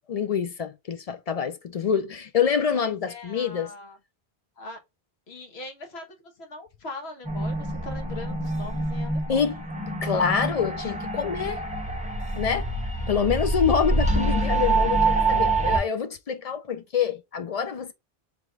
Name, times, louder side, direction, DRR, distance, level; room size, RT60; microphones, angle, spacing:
voice 1, 0.1-3.7 9.3-9.5 10.0-11.6 12.4-12.7 13.1-17.9, left 6 dB, 50° left, 0.4 m, -26 dB
voice 2, 2.7-4.0 4.6-4.8 5.3-6.0 6.4-9.5, left 2 dB, 85° left, 1.3 m, -40 dB
sound 1, 7.3-15.8, right 2 dB, 10° right, 0.9 m, -26 dB
3.4 x 3.2 x 3.5 m
omnidirectional pair, 1.0 m